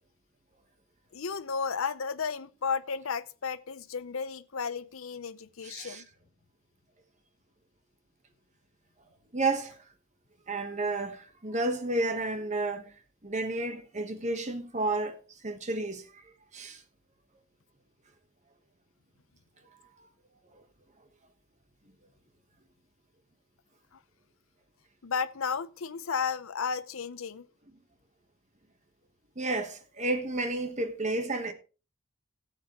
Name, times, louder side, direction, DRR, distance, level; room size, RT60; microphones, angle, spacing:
voice 1, 1.1-6.1 25.0-27.5, left 5 dB, 70° left, 0.7 m, -33 dB
voice 2, 5.6-6.0 9.3-9.8 10.5-12.8 13.2-16.0 16.5-16.8 29.4-31.5, right 2 dB, 35° right, 1.2 m, -31 dB
16.0 x 8.3 x 3.0 m
head